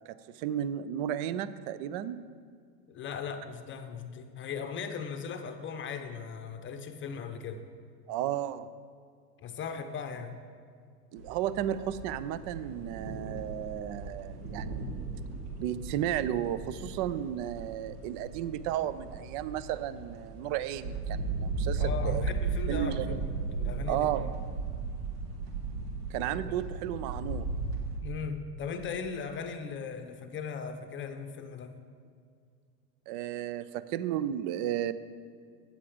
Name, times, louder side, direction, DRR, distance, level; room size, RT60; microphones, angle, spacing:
voice 1, 0.0-2.2 8.1-8.7 11.1-15.0 15.6-22.2 22.7-23.2 23.9-24.3 26.1-27.5 33.1-34.9, right 11 dB, 45° right, 14 dB, 0.5 m, -33 dB
voice 2, 2.9-7.6 9.4-10.3 21.8-24.3 26.5-26.6 28.0-31.8, left 6 dB, 25° left, 7 dB, 0.7 m, -38 dB
sound 1, 11.2-28.0, right 4 dB, 70° right, 1.7 m, -36 dB
8.6 x 7.5 x 5.0 m, 2.2 s
hypercardioid pair, 105°, 48 cm